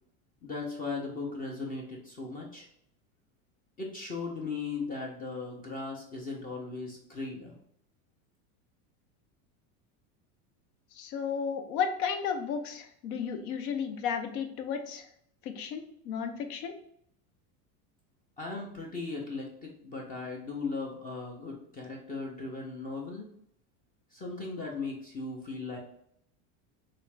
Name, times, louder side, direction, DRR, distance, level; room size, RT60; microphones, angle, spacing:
voice 1, 0.4-2.7 3.8-7.5 18.4-23.3 24.1-25.8, left 3 dB, 20° left, -1 dB, 0.5 m, -37 dB
voice 2, 10.9-15.1 15.4-16.7, left 7 dB, 80° left, 7 dB, 0.7 m, -33 dB
3.5 x 2.4 x 3.1 m, 0.70 s
supercardioid pair, 135°, 44 cm